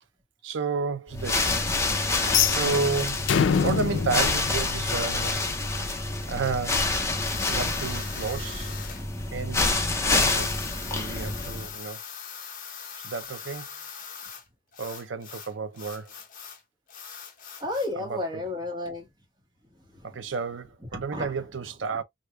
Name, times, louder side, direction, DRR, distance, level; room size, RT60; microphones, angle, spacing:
voice 1, 0.4-1.6 2.4-3.4 3.6-5.4 5.8-5.9 6.2-7.0 7.5-8.8 9.3-10.6 10.9-12.0 13.0-13.7 14.8-16.2 18.0-18.2 20.0-22.0, right 4 dB, 70° right, 0.6 m, -32 dB
sound 1, 1.1-11.8, left 3 dB, 15° left, 0.6 m, -27 dB
sound 2, 2.2-5.3, left 7 dB, 70° left, 0.4 m, -26 dB
sound 3, 7.1-9.0 10.0-14.5 14.7-16.6 16.9-17.9, left 6 dB, 45° left, 0.9 m, -41 dB
voice 2, 17.6-19.1 19.9-20.3 20.9-21.3, left 2 dB, 20° right, 1.4 m, -32 dB
4.9 x 2.6 x 2.3 m
head